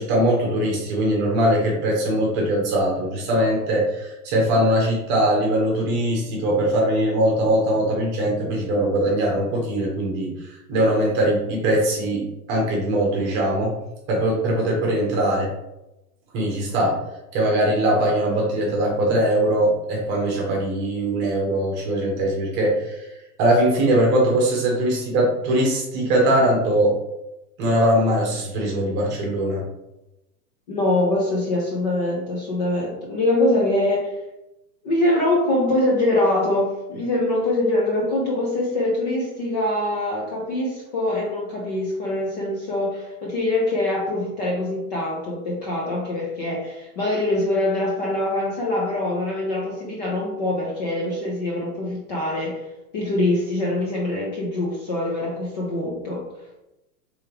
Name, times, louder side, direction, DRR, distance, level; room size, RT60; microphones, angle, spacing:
voice 1, 0.0-13.7 14.1-15.5 16.3-16.9 17.3-23.1 23.4-27.0 27.6-29.6, right 1 dB, 20° right, -2 dB, 1.0 m, -21 dB
voice 2, 30.7-34.2 34.8-52.6 52.9-56.3, left 1 dB, 30° left, -3 dB, 0.5 m, -23 dB
4.6 x 3.5 x 3.3 m, 0.92 s
supercardioid pair, 165°, 47 cm